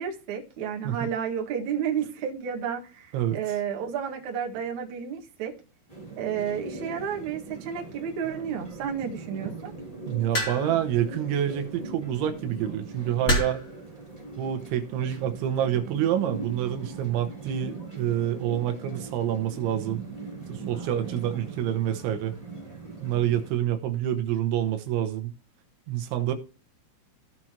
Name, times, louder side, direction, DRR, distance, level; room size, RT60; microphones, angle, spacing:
voice 1, 0.0-5.5 6.2-9.7, right 8 dB, 55° right, 2.4 m, -31 dB
voice 2, 3.1-3.6 10.1-13.6 14.4-20.0 20.5-22.3 23.0-25.3 25.9-26.3, right 11 dB, 80° right, 3.3 m, -27 dB
sound 1, 5.9-23.5, right 3 dB, 10° left, 2.5 m, -40 dB
sound 2, 10.3-10.9 12.1-12.3 13.3-13.7 14.7-15.0, equal, 25° left, 1.9 m, -27 dB
15.5 x 6.1 x 2.9 m
omnidirectional pair, 5.5 m